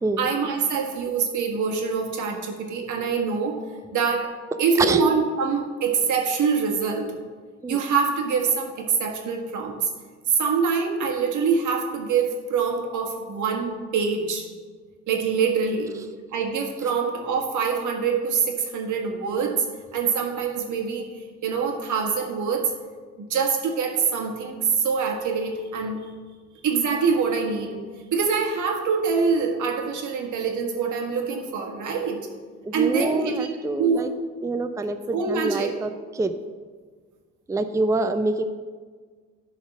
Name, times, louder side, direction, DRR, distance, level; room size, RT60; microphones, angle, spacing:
voice 1, 0.2-3.6 3.9-4.3 4.6-7.1 7.7-9.9 10.3-14.5 15.1-15.9 16.3-19.7 19.9-22.7 23.2-26.0 26.6-27.8 28.1-32.3 32.7-34.1 35.1-35.7, right 5 dB, 75° right, 2 dB, 1.6 m, -25 dB
voice 2, 32.6-34.1 34.4-35.9 36.1-36.3 37.5-38.4, right 2 dB, 10° right, 8 dB, 0.5 m, -26 dB
11.0 x 4.1 x 6.1 m, 1.5 s
cardioid pair, 90°, 30 cm